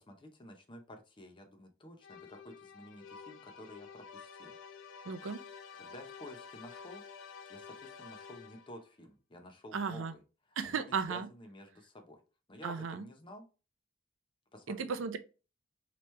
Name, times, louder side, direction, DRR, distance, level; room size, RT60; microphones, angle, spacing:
voice 1, 0.0-4.6 5.7-7.0 7.5-10.2 10.5-12.2 12.5-13.4 14.5-15.0, left 1 dB, 25° left, 0.7 m, -51 dB
sound 1, 2.0-8.9, left 6 dB, 65° left, 0.5 m, -50 dB
voice 2, 5.1-5.4 9.7-10.1 10.6-11.3 12.6-13.0 14.7-15.2, right 5 dB, 75° right, 0.5 m, -35 dB
3.1 x 2.9 x 3.2 m
head